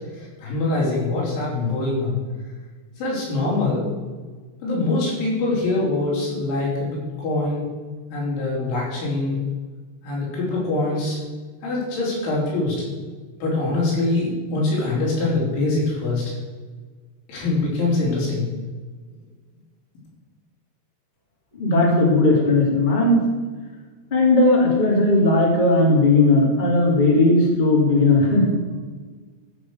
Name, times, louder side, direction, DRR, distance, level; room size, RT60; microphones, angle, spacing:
voice 1, 0.1-2.2 3.0-3.9 4.6-7.6 8.1-9.4 10.0-11.2 11.6-12.8 13.4-16.2 17.3-18.5, left 2 dB, 80° left, -5 dB, 6.4 m, -23 dB
voice 2, 21.6-23.2 24.1-28.5, left 2 dB, 15° left, -3 dB, 2.3 m, -17 dB
13.0 x 7.5 x 6.6 m, 1.4 s
omnidirectional pair, 5.3 m